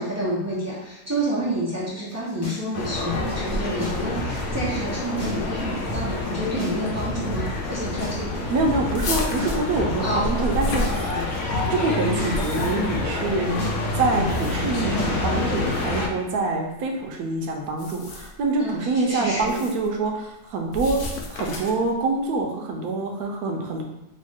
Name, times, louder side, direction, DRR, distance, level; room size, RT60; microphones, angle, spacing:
voice 1, 0.0-8.5 10.0-10.3 11.1-11.2 18.6-19.6, right 1 dB, 15° right, -8 dB, 0.6 m, -29 dB
sound 1, 2.4-4.7 5.0-5.6 5.9-6.0 6.6-15.2, equal, 20° left, 0.7 m, -31 dB
sound 2, 2.7-16.1, left 3 dB, 60° left, 1.0 m, -28 dB
voice 2, 8.5-11.0 11.7-13.5 14.0-21.0 21.3-23.8, right 3 dB, 90° right, 2 dB, 1.1 m, -25 dB
sound 3, 8.9-11.6 12.1-13.0 14.1-14.8 15.6-15.9 17.7-18.4 19.4-19.9 20.7-21.9, left 1 dB, 85° left, 0.4 m, -31 dB
3.1 x 2.5 x 3.5 m, 0.89 s
omnidirectional pair, 1.5 m